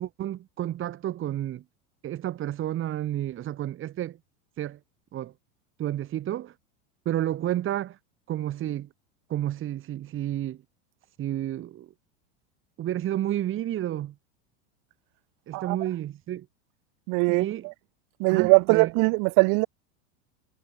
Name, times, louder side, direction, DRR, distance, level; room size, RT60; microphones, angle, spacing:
voice 1, 0.0-1.6 2.0-4.2 4.6-4.8 5.1-5.3 5.8-6.5 7.0-8.0 8.3-8.9 9.3-10.6 11.2-11.9 12.8-14.1 15.5-16.5 17.3-17.6 18.3-18.9, right 12 dB, 35° right, 3.2 m, -30 dB
voice 2, 17.1-17.7 18.2-19.7, right 35 dB, 60° right, 5.6 m, -21 dB
supercardioid pair, 130°, 36 cm